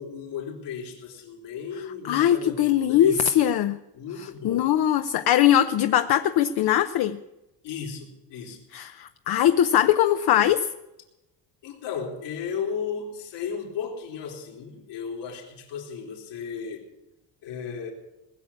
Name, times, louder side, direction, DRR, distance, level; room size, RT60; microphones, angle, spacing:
voice 1, 0.0-3.3 3.9-4.7 7.6-8.6 11.6-16.9 17.4-17.9, left 6 dB, 90° left, 0 dB, 3.8 m, -35 dB
voice 2, 2.1-3.8 4.2-7.2 8.7-10.7, left 11 dB, 65° left, 8 dB, 0.7 m, -21 dB
20.0 x 7.2 x 9.8 m, 0.97 s
cardioid pair, 135°, 41 cm